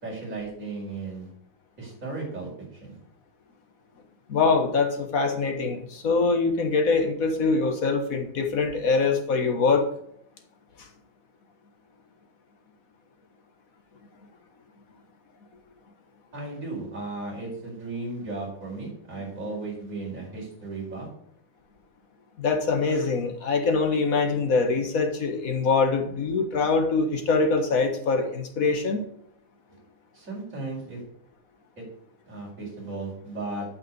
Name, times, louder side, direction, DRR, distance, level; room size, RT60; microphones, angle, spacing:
voice 1, 0.0-1.3 1.8-3.0 16.3-21.1 30.1-31.0 31.8-31.9 32.3-33.7, right 3 dB, 40° right, -4 dB, 5.2 m, -35 dB
voice 2, 4.3-9.9 10.8-10.9 22.4-29.0, left 4 dB, 45° left, 4 dB, 1.7 m, -24 dB
9.1 x 5.9 x 8.1 m, 0.69 s
omnidirectional pair, 2.2 m